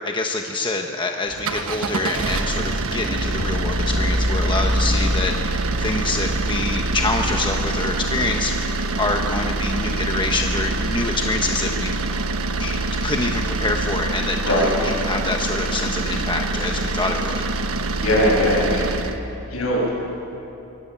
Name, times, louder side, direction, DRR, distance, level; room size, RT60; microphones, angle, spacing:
voice 1, 0.0-12.0 12.6-17.5, left 2 dB, 20° left, 3 dB, 1.1 m, -26 dB
sound 1, 1.3-9.7, left 1 dB, 50° left, 2.7 m, -37 dB
sound 2, 1.3-19.2, right 2 dB, 65° right, 1.2 m, -24 dB
voice 2, 18.0-18.9 19.5-19.9, left 1 dB, 70° left, -3 dB, 7.6 m, -20 dB
24.5 x 18.0 x 7.5 m, 3.0 s
head